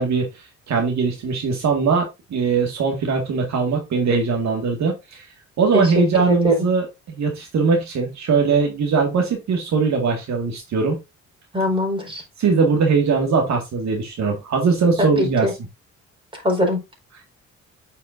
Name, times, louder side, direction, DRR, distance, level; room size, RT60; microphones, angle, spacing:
voice 1, 0.0-5.3 5.6-11.0 12.4-15.5, right 5 dB, 65° right, 2 dB, 2.0 m, -21 dB
voice 2, 5.7-6.5 11.5-12.2 15.0-15.5 16.3-16.8, equal, 15° right, 1 dB, 4.8 m, -21 dB
8.7 x 5.7 x 2.6 m, 0.22 s
cardioid pair, 90°, 30 cm